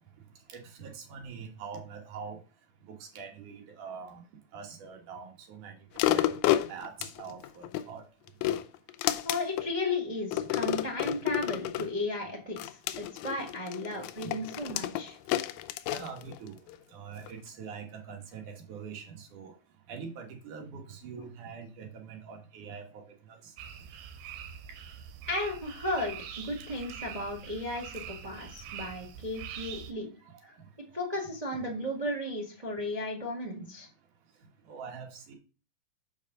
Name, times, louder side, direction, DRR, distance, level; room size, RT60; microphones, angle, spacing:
voice 1, 0.5-2.4 3.2-4.2 4.5-5.8 6.1-6.3 6.7-8.0 13.8-14.1 15.9-16.5 16.9-19.5 19.9-23.0 23.3-23.4 34.7-35.4, right 6 dB, 60° right, 2 dB, 2.8 m, -44 dB
sound 1, 6.0-7.9 8.3-9.7 10.3-11.9 12.6-16.8 17.3-17.4, left 13 dB, 85° left, 2.4 m, -30 dB
voice 2, 9.2-12.6 12.9-15.2 25.3-30.1 30.4-30.5 30.9-33.9, left 1 dB, 40° right, 1 dB, 0.5 m, -34 dB
sound 2, 23.6-29.9, right 8 dB, 85° right, 2.8 m, -44 dB
6.3 x 5.2 x 6.5 m, 0.34 s
omnidirectional pair, 4.3 m